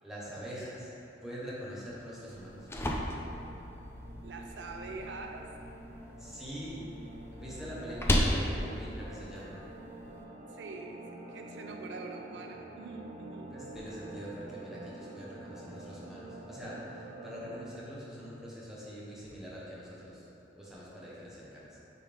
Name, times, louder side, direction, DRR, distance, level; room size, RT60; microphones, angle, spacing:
voice 1, 0.0-0.9 1.2-2.7 6.2-6.9 7.3-9.6 13.5-20.3 20.6-21.8, equal, 5° right, -8 dB, 1.3 m, -44 dB
sound 1, 2.2-17.7, right 2 dB, 40° right, 0.6 m, -48 dB
sound 2, 2.3-10.2, left 1 dB, 15° left, 0.4 m, -35 dB
voice 2, 4.2-5.5 10.5-13.5, right 3 dB, 80° right, 3 dB, 0.5 m, -44 dB
8.9 x 4.0 x 3.6 m, 2.8 s
head